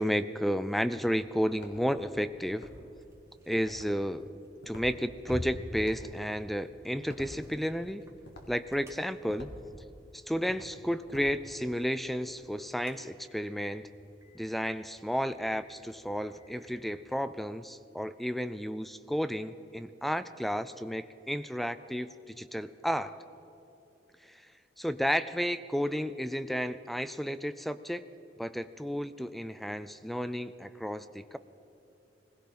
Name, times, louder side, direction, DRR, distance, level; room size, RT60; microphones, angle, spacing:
voice 1, 0.0-2.7 3.5-4.3 4.7-8.0 8.5-9.5 10.1-13.9 14.3-23.2 24.2-24.4 24.8-28.0 28.4-31.4, equal, ahead, 13 dB, 0.4 m, -32 dB
sound 1, 0.6-12.4, equal, 80° left, 2.1 m, -52 dB
sound 2, 2.6-17.2, equal, 15° right, 1.6 m, -50 dB
20.5 x 16.5 x 4.3 m, 2.9 s
head